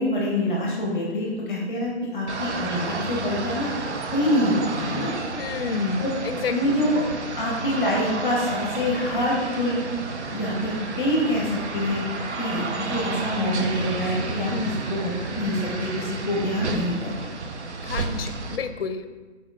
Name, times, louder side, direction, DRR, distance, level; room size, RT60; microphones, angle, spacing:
voice 1, 0.0-3.8 4.1-5.1 6.0-6.1 6.5-7.0 7.4-9.8 10.3-12.0 12.4-14.5 14.9-16.9, left 1 dB, ahead, -4 dB, 0.9 m, -25 dB
sound 1, 2.3-18.6, right 3 dB, 80° right, 0.8 m, -31 dB
voice 2, 5.4-6.7 14.5-14.8 17.8-19.1, left 5 dB, 60° left, 10 dB, 0.5 m, -30 dB
6.2 x 4.3 x 3.6 m, 1.3 s
hypercardioid pair, 175°, 34 cm